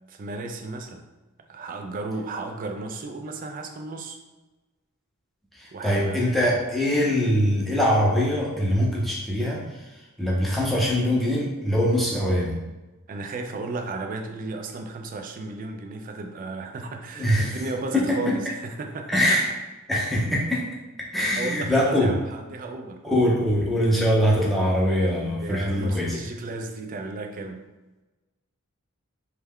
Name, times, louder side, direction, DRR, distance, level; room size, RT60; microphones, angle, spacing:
voice 1, 0.1-1.1 1.5-4.2 5.7-6.3 13.1-19.4 21.4-23.0 25.4-27.6, right 3 dB, 40° right, 5 dB, 0.3 m, -34 dB
voice 2, 5.6-9.6 10.2-12.6 17.2-17.6 17.9-18.4 19.1-19.5 19.9-20.6 21.1-22.1 23.0-26.1, equal, ahead, -5 dB, 0.6 m, -22 dB
3.2 x 2.2 x 3.5 m, 1.1 s
head